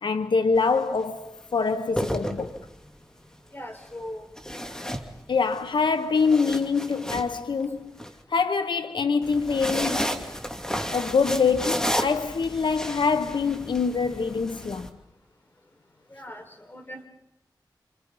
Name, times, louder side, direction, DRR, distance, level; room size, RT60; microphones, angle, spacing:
voice 1, 0.0-2.5 5.3-7.9 8.3-10.2 10.9-14.9, left 5 dB, 85° left, 0.9 m, -25 dB
sound 1, 0.6-0.8 1.7-2.9 4.4-5.6 6.0-8.1 9.2-14.9, equal, 10° left, 2.5 m, -32 dB
voice 2, 3.5-4.3 16.1-17.1, left 1 dB, 30° left, 4.8 m, -39 dB
28.0 x 27.5 x 5.5 m
wide cardioid pair, 80°, 8 cm